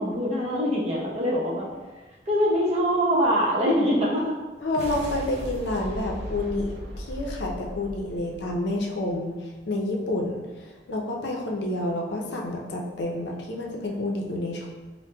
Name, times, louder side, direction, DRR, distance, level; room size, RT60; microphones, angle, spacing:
voice 1, 0.0-1.7 2.3-4.3, equal, 35° right, -5 dB, 0.8 m, -23 dB
voice 2, 4.6-10.4 10.9-14.7, left 1 dB, 75° left, -1 dB, 0.5 m, -29 dB
sound 1, 4.6-9.1, equal, 65° right, 0.4 m, -37 dB
5.8 x 2.1 x 2.2 m, 1.3 s
head